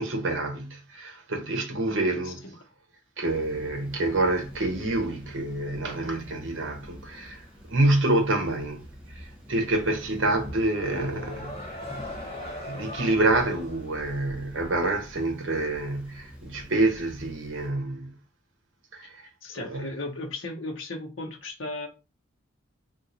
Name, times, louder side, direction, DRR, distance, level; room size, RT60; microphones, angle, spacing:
voice 1, 0.0-2.4 3.2-11.6 12.2-18.1 18.9-19.9, right 2 dB, 65° right, 0.9 m, -27 dB
voice 2, 2.2-2.5 19.4-21.9, left 2 dB, 70° left, 0.9 m, -36 dB
Thunder / Rain, 3.2-17.7, equal, 5° right, 0.9 m, -45 dB
sound 1, 10.3-14.7, left 1 dB, 30° left, 1.2 m, -41 dB
2.9 x 2.4 x 3.8 m
head